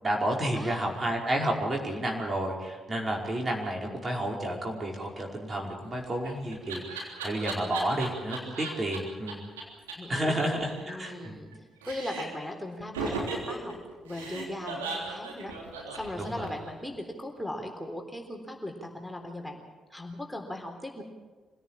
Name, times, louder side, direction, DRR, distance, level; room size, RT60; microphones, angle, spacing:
voice 1, 0.0-9.4 10.1-11.4 16.2-16.5, right 1 dB, 35° right, 0 dB, 5.1 m, -31 dB
voice 2, 0.5-1.0 10.0-10.4 10.8-11.5 11.8-13.8 14.0-15.5 15.9-19.6 19.9-21.0, left 1 dB, 5° left, 2 dB, 3.8 m, -38 dB
Laughter, 5.9-9.0 9.3-9.4 9.6-9.7 9.9-10.0 10.2-11.5 11.8-12.4 12.9-16.7, right 4 dB, 85° right, 3.5 m, -37 dB
25.5 x 17.0 x 7.4 m, 1.4 s
hypercardioid pair, 45°, 0 cm